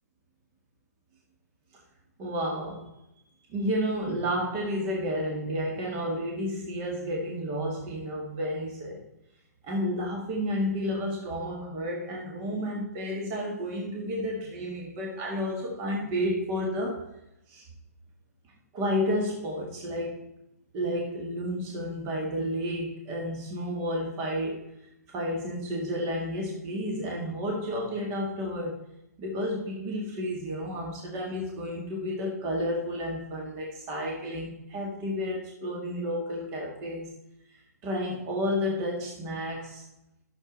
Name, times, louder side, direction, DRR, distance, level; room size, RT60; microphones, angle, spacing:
voice 1, 2.2-2.9 3.5-9.0 9.6-17.1 17.5-17.7 18.7-20.3 20.7-24.7 25.1-28.8 29.2-37.1 37.8-39.9, equal, 30° right, -1 dB, 2.1 m, -31 dB
10.5 x 7.2 x 4.1 m, 0.85 s
hypercardioid pair, 145°, 9 cm